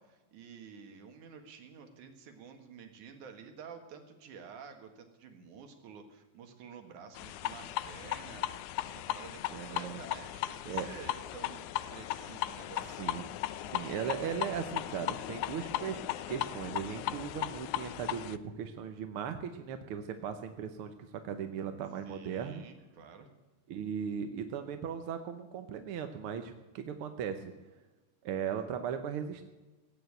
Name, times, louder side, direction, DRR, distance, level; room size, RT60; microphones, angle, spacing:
voice 1, 0.0-8.5 8.9-11.6 11.9-13.1 22.0-23.3, right 6 dB, 90° right, 6 dB, 3.2 m, -50 dB
sound 1, 7.2-18.4, left 13 dB, 80° left, 2.1 m, -37 dB
voice 2, 9.5-10.0 10.7-10.9 13.0-13.3 13.6-16.0 16.3-22.6 23.7-27.5 28.2-29.5, right 8 dB, 65° right, 8 dB, 1.4 m, -38 dB
17.0 x 9.2 x 8.0 m, 1.1 s
omnidirectional pair, 3.4 m